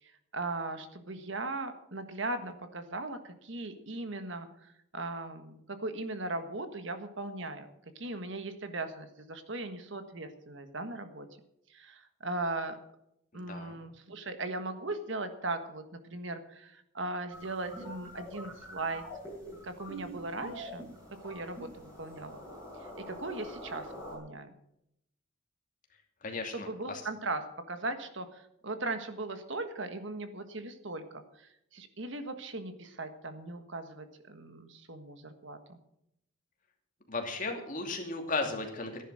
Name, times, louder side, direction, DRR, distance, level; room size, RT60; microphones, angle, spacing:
voice 1, 0.0-7.7 7.9-11.3 11.7-12.8 13.3-19.1 19.6-20.9 21.2-22.4 23.1-24.6 26.5-35.8, right 2 dB, 60° right, 8 dB, 1.5 m, -38 dB
voice 2, 13.3-13.8 26.2-27.0 37.1-39.0, left 3 dB, 40° left, 3 dB, 2.6 m, -35 dB
sound 1, 17.3-24.2, equal, 15° right, 6.3 m, -45 dB
14.5 x 10.5 x 6.4 m, 0.78 s
head